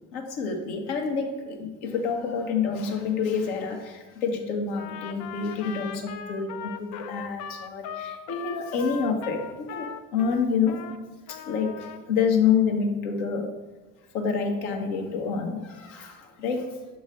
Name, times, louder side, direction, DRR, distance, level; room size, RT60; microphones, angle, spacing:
voice 1, 0.1-9.9 10.1-10.9 11.5-13.5 14.1-16.9, left 6 dB, 60° left, 3 dB, 1.2 m, -28 dB
Trumpet, 4.8-11.0 11.3-12.0, left 9 dB, 40° left, 0.5 m, -39 dB
6.4 x 3.0 x 5.6 m, 1.2 s
figure-of-eight pair, 60°, 47 cm